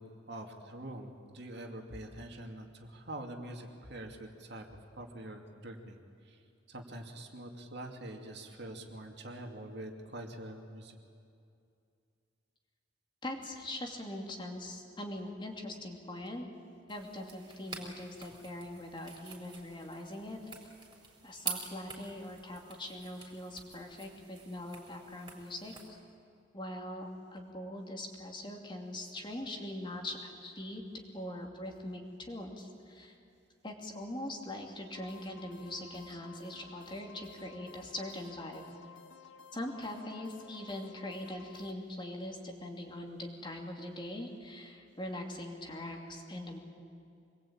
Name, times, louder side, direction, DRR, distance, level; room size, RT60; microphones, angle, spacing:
voice 1, 0.0-11.0, right 1 dB, 60° right, 3 dB, 2.6 m, -45 dB
voice 2, 13.2-16.4 16.9-20.7 21.2-25.7 26.5-30.8 31.1-33.1 33.6-38.6 39.5-46.6, left 1 dB, 25° left, 2 dB, 2.7 m, -42 dB
sound 1, 16.9-25.9, right 5 dB, 25° right, 4.4 m, -47 dB
sound 2, 34.9-41.7, left 5 dB, 75° left, 1.7 m, -55 dB
26.0 x 21.0 x 8.8 m, 2.5 s
head